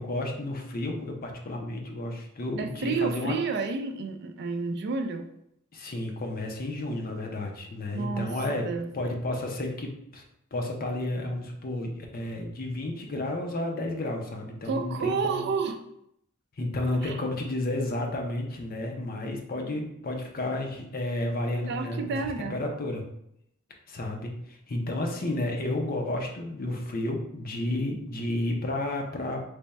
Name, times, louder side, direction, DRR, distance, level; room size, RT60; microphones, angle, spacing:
voice 1, 0.0-3.4 5.7-8.7 8.9-10.2 10.5-15.5 16.6-22.2 22.5-23.0 23.9-29.4, left 1 dB, 45° left, 2 dB, 0.6 m, -31 dB
voice 2, 2.6-5.3 7.9-8.3 8.5-8.9 14.7-15.8 17.0-17.2 21.7-22.6, right 4 dB, 55° right, 6 dB, 0.4 m, -30 dB
3.4 x 2.2 x 4.0 m, 0.74 s
head